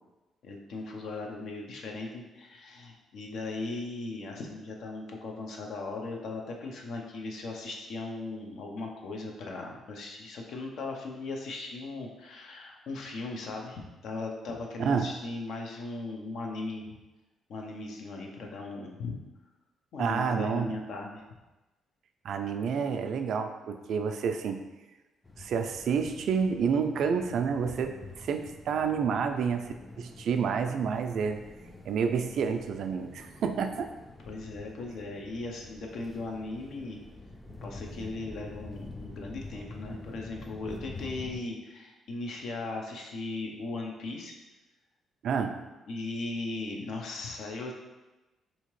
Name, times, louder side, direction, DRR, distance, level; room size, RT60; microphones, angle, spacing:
voice 1, 0.4-16.9 17.5-19.2 19.9-21.2 34.2-37.0 37.6-44.3 45.9-47.7, left 3 dB, 70° left, 1 dB, 0.6 m, -38 dB
voice 2, 14.8-15.1 20.0-20.7 22.2-24.6 25.4-31.4 31.8-33.9 45.2-45.7, right 6 dB, 70° right, 7 dB, 0.3 m, -29 dB
sound 1, 25.2-41.4, left 2 dB, 15° left, 0.4 m, -46 dB
3.6 x 2.8 x 3.1 m, 1.1 s
cardioid pair, 90°, 0 cm